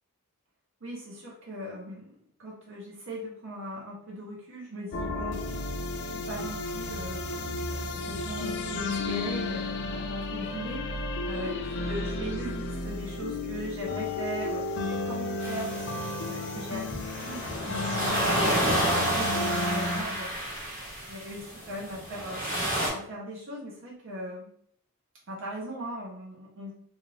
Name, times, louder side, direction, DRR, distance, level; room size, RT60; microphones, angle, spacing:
voice 1, 0.8-5.4 6.0-7.2 7.7-10.9 11.2-17.8 18.4-20.3 21.1-22.4 22.9-24.5 25.3-26.7, equal, 60° right, -3 dB, 0.6 m, -39 dB
sound 1, 4.9-20.0, left 2 dB, 50° left, 0.3 m, -33 dB
sound 2, 15.4-22.9, right 1 dB, 35° right, 1.2 m, -30 dB
2.5 x 2.5 x 3.1 m, 0.64 s
head